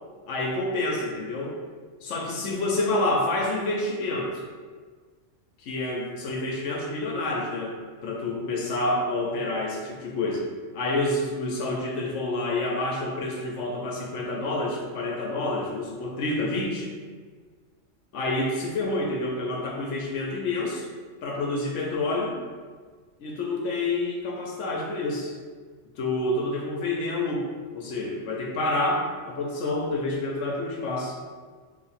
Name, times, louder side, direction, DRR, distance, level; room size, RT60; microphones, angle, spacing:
voice 1, 0.3-1.6 2.0-4.3 5.6-10.4 10.7-16.9 18.1-20.9 21.2-22.4 23.2-25.3 26.0-27.5 27.7-31.2, left 2 dB, 75° left, -1 dB, 0.9 m, -28 dB
2.9 x 2.5 x 4.1 m, 1.5 s
omnidirectional pair, 1.3 m